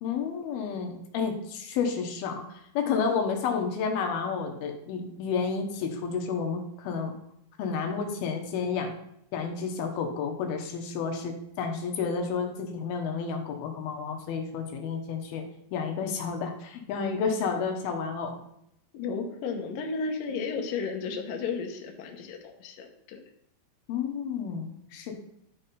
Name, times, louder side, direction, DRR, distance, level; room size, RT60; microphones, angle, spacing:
voice 1, 0.0-7.1 7.6-8.9 9.3-15.4 15.7-18.3 23.9-25.1, left 5 dB, 90° left, 3 dB, 3.0 m, -31 dB
voice 2, 18.9-23.2, left 5 dB, 70° left, 2 dB, 2.7 m, -33 dB
12.0 x 4.3 x 5.4 m, 0.75 s
omnidirectional pair, 4.3 m